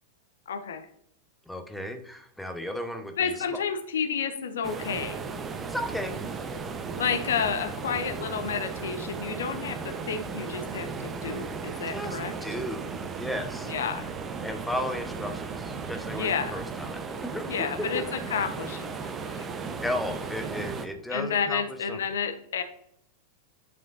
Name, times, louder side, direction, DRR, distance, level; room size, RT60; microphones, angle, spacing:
voice 1, 0.5-0.8 3.2-5.2 7.0-12.3 13.7-14.1 16.2-16.5 17.5-19.5 21.1-22.6, left 6 dB, 65° left, 9 dB, 1.0 m, -30 dB
voice 2, 1.5-3.6 5.6-6.2 11.9-13.7 14.4-18.1 19.8-22.0, left 1 dB, ahead, 5 dB, 1.1 m, -35 dB
sound 1, 4.6-20.9, right 5 dB, 20° right, 0.9 m, -36 dB
11.0 x 5.4 x 2.7 m, 0.72 s
figure-of-eight pair, 90°, 0 cm